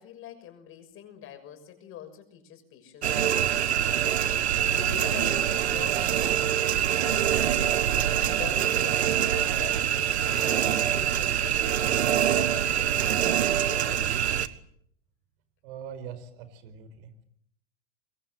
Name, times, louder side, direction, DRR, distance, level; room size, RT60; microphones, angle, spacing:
voice 1, 0.0-14.2, left 9 dB, 40° left, 8 dB, 6.5 m, -44 dB
sound 1, 3.0-14.5, right 10 dB, 80° right, 1.5 m, -25 dB
voice 2, 15.6-17.1, right 8 dB, 60° right, 11 dB, 5.0 m, -42 dB
24.5 x 22.0 x 7.9 m, 0.68 s
hypercardioid pair, 95°, 32 cm